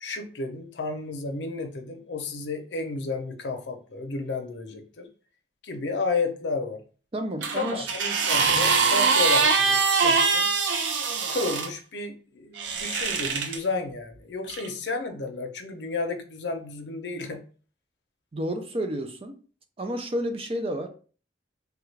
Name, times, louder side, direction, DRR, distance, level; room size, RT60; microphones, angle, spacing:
voice 1, 0.0-5.1 5.6-6.8 7.5-10.5 11.3-17.4, left 3 dB, 85° left, 0.6 m, -32 dB
voice 2, 7.1-7.9 18.3-19.3 19.8-20.9, equal, 30° right, 0.4 m, -30 dB
sound 1, 7.4-11.7 12.6-13.6 14.5-14.7, right 4 dB, 90° right, 0.4 m, -23 dB
3.4 x 2.4 x 3.1 m
head